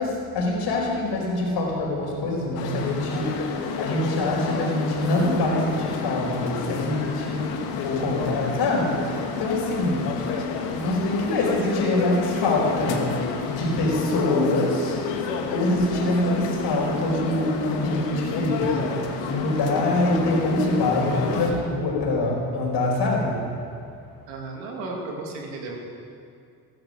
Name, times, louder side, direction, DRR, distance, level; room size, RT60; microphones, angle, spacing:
voice 1, 0.0-10.3 10.7-13.1 13.4-15.0 15.5-23.4, left 2 dB, 70° left, -2 dB, 4.7 m, -25 dB
sound 1, 2.6-21.5, left 5 dB, 85° left, 1.6 m, -30 dB
voice 2, 24.3-25.8, right 3 dB, 85° right, 0 dB, 2.6 m, -34 dB
14.5 x 14.5 x 6.4 m, 2.4 s
supercardioid pair, 60°, 43 cm